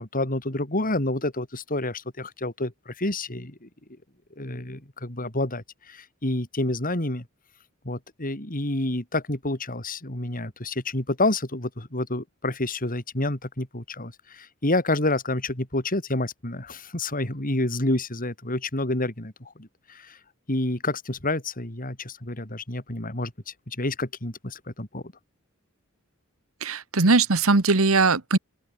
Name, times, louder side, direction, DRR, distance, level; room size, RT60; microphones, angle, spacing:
voice 1, 0.0-3.7 4.4-7.2 7.8-20.2 20.5-23.3 23.7-25.0, left 2 dB, 40° left, 4.4 m, -29 dB
voice 2, 26.6-28.4, right 3 dB, 90° right, 1.5 m, -20 dB
open air
head